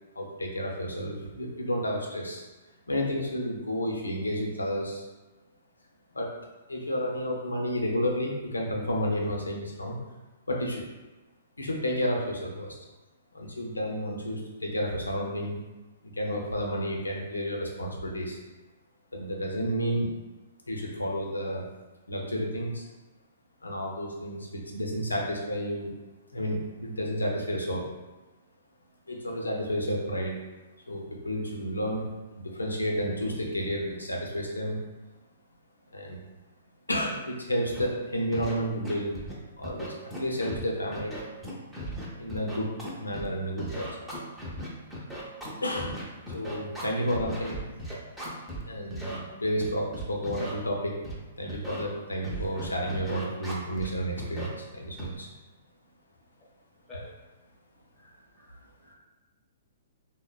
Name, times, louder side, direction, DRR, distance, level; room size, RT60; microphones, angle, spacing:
voice 1, 0.2-2.4 2.9-5.1 6.1-6.3 6.7-10.0 10.5-10.8 11.6-12.8 13.3-15.6 16.0-18.4 19.1-20.1 20.7-21.7 22.1-22.9 23.6-25.9 26.3-27.9 29.1-30.4 30.9-34.8 35.9-36.2 36.9-39.2 39.6-41.5 42.2-42.7 43.0-44.1 45.6-46.0 46.3-47.6 48.7-50.9 51.4-55.3, equal, 85° left, -1 dB, 0.5 m, -31 dB
Scratching (performance technique), 37.7-37.8 38.3-38.5 38.8-39.3 39.6-40.6 40.9-43.3 43.6-48.6 48.9-49.2 49.6-50.5 51.0-51.2 51.5-51.8 52.2-53.9 54.2-54.5 55.0-55.2, equal, 5° right, 0.6 m, -37 dB
voice 2, 58.0-58.9, left 1 dB, 20° left, -5 dB, 0.9 m, -49 dB
3.3 x 2.1 x 2.3 m, 1.1 s
figure-of-eight pair, 120°, 0 cm